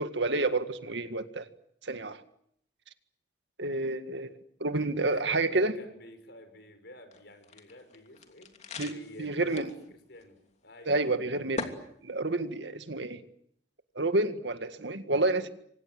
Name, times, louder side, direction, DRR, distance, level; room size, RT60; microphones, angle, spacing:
voice 1, 0.0-1.5 1.8-2.2 3.6-4.3 4.6-5.7 8.8-9.7 10.9-11.7 12.0-13.2 14.0-15.5, right 2 dB, 75° right, 9 dB, 2.0 m, -29 dB
voice 2, 4.9-11.0, left 1 dB, 65° left, 9 dB, 6.0 m, -51 dB
sound 1, 7.1-9.8 10.1-10.2 11.6-11.8, left 3 dB, 40° left, 3.0 m, -40 dB
29.0 x 25.0 x 7.9 m, 0.71 s
head